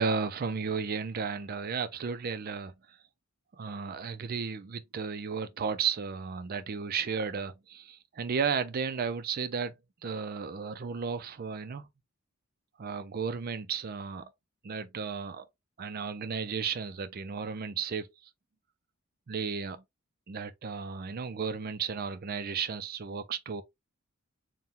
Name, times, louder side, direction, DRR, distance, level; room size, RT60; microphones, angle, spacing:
voice 1, 0.0-2.7 3.6-9.7 10.0-11.9 12.8-14.3 14.6-15.5 15.8-18.1 19.3-19.8 20.3-23.6, right 5 dB, 45° right, 0.4 m, -34 dB
4.2 x 2.2 x 3.6 m
head